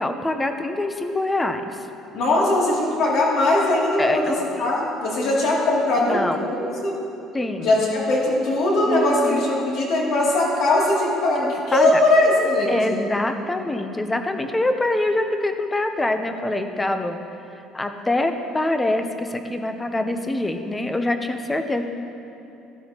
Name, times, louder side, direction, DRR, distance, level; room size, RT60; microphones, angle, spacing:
voice 1, 0.0-1.6 4.0-4.7 6.0-6.4 7.3-7.8 8.9-9.5 11.4-11.9 12.7-17.2 17.7-21.8, left 2 dB, 10° left, 7 dB, 0.6 m, -25 dB
voice 2, 2.1-7.0 7.6-12.9, left 2 dB, 55° left, -4 dB, 2.7 m, -20 dB
15.5 x 11.5 x 2.9 m, 2.8 s
cardioid pair, 170°, 0 cm